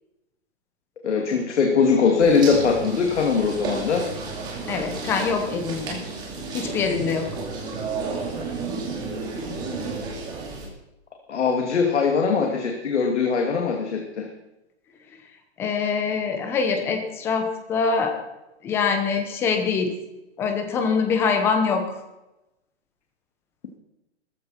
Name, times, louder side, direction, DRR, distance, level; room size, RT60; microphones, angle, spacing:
voice 1, 1.0-4.1 11.3-14.3, left 5 dB, 80° left, 2 dB, 2.7 m, -21 dB
sound 1, 2.2-10.7, right 4 dB, 10° right, 2.5 m, -32 dB
voice 2, 4.7-6.0 6.5-7.3 15.6-18.2 18.6-19.9 20.4-21.8, left 5 dB, 5° left, 6 dB, 0.8 m, -24 dB
17.0 x 14.5 x 4.4 m, 0.95 s
hypercardioid pair, 175°, 34 cm